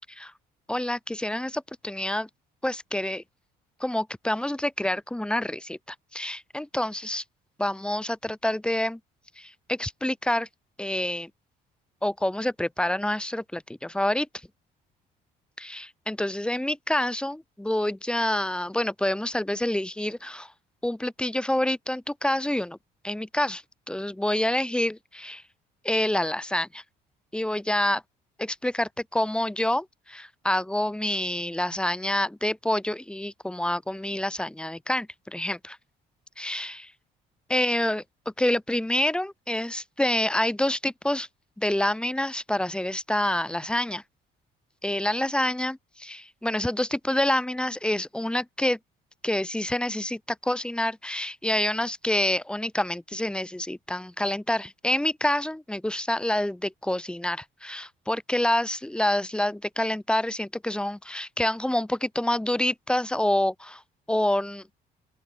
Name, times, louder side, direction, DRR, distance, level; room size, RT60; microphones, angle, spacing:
voice 1, 0.7-2.3 2.6-3.2 3.8-7.2 7.6-9.0 9.4-10.5 10.8-11.3 12.0-14.3 15.6-20.5 20.8-22.8 23.0-23.6 23.9-25.4 25.8-26.8 27.3-28.0 28.4-35.8 36.4-36.9 37.5-38.0 38.4-41.3 41.6-44.0 44.8-48.8 49.2-63.8 64.1-64.6, left 1 dB, 5° left, 1.9 m, -27 dB
open air
cardioid pair, 110°, 17 cm